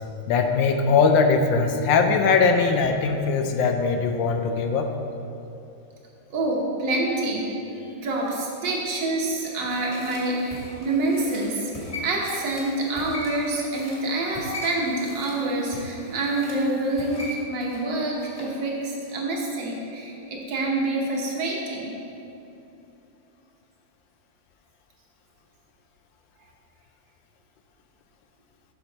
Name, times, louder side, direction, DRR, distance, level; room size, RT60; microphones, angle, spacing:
voice 1, 0.3-4.9, left 5 dB, 80° left, 5 dB, 1.3 m, -20 dB
voice 2, 6.3-7.5 8.0-11.7 12.0-21.9, right 2 dB, 70° right, -2 dB, 1.7 m, -27 dB
sound 1, 9.2-18.6 18.9-19.0, left 1 dB, 20° left, 1.3 m, -39 dB
7.7 x 5.9 x 4.0 m, 2.9 s
omnidirectional pair, 2.1 m